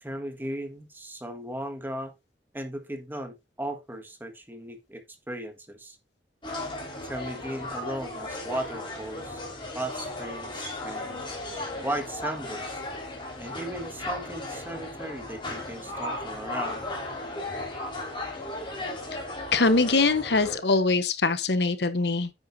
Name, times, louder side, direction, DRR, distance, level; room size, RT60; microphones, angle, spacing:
voice 1, 0.0-2.1 2.5-5.0 5.3-6.0 7.0-9.4 9.7-11.2 11.8-12.8 13.4-16.8, right 1 dB, 10° right, 1.6 m, -36 dB
sound 1, 6.4-20.6, left 2 dB, 30° left, 4.5 m, -36 dB
voice 2, 19.5-22.3, left 3 dB, 70° left, 1.1 m, -23 dB
9.3 x 9.0 x 2.7 m
head